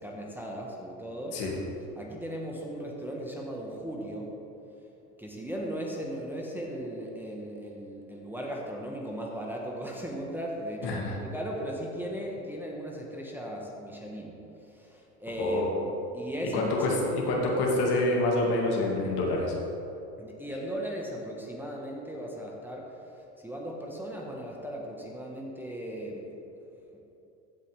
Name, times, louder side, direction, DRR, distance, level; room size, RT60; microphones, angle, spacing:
voice 1, 0.0-1.4 2.0-4.3 5.2-14.3 14.6-17.0 20.2-26.4 26.9-27.0, equal, 5° right, -3 dB, 1.3 m, -37 dB
voice 2, 10.8-11.2 15.4-15.7 16.5-19.5, left 2 dB, 55° left, -2 dB, 2.2 m, -27 dB
15.5 x 5.4 x 3.5 m, 2.9 s
hypercardioid pair, 85°, 45 cm